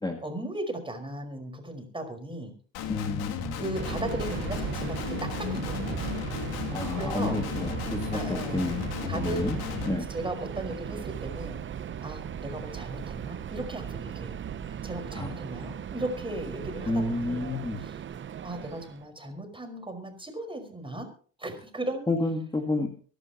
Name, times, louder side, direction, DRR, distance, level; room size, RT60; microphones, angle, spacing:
voice 1, 0.2-2.5 3.5-6.1 6.9-7.4 8.1-8.8 9.1-9.5 9.9-11.6 12.0-14.4 14.7-17.5 17.8-18.0 18.4-21.1 21.4-22.1, right 1 dB, 15° right, 6 dB, 5.1 m, -37 dB
Guitar, 2.7-9.9, left 7 dB, 65° left, 2.9 m, -34 dB
voice 2, 2.9-3.6 6.7-9.6 9.9-10.1 15.2-15.3 16.9-17.8 22.1-22.9, left 2 dB, 10° left, 3 dB, 2.3 m, -30 dB
Subway metro underground, 3.7-19.1, right 8 dB, 30° right, 0.8 m, -37 dB
24.0 x 11.5 x 3.0 m, 0.42 s
supercardioid pair, 95°, 40 cm